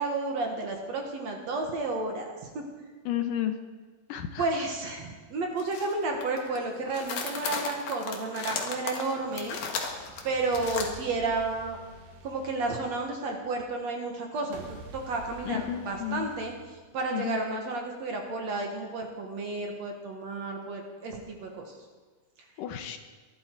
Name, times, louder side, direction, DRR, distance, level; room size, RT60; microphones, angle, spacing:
voice 1, 0.0-2.6 4.4-9.6 10.2-11.8 12.2-14.7 14.9-16.5 16.9-21.6, right 3 dB, 55° right, 2 dB, 2.4 m, -32 dB
voice 2, 3.1-3.6 4.1-4.4 15.4-16.3 17.1-17.4 22.6-23.0, left 11 dB, 75° left, 7 dB, 2.3 m, -32 dB
sound 1, 5.6-5.9 6.2-6.6 6.9-10.9, left 5 dB, 55° left, 2.6 m, -35 dB
sound 2, 9.3-13.4 14.5-17.4, right 3 dB, 70° right, 3.4 m, -48 dB
23.0 x 11.5 x 4.7 m, 1.4 s
omnidirectional pair, 4.2 m